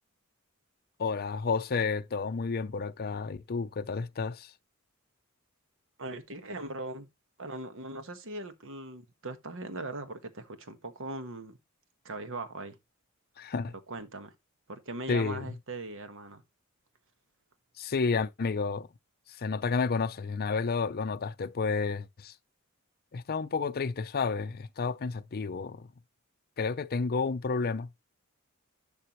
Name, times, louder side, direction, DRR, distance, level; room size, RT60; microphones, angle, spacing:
voice 1, 1.0-4.5 13.4-13.7 15.1-15.5 17.8-18.9 19.4-22.3 23.1-25.9 26.6-27.9, left 4 dB, 45° left, 0.5 m, -31 dB
voice 2, 6.0-7.1 7.4-11.6 12.0-12.8 13.9-14.3 14.7-16.4, right 2 dB, 65° right, 1.4 m, -40 dB
11.5 x 5.5 x 3.0 m
head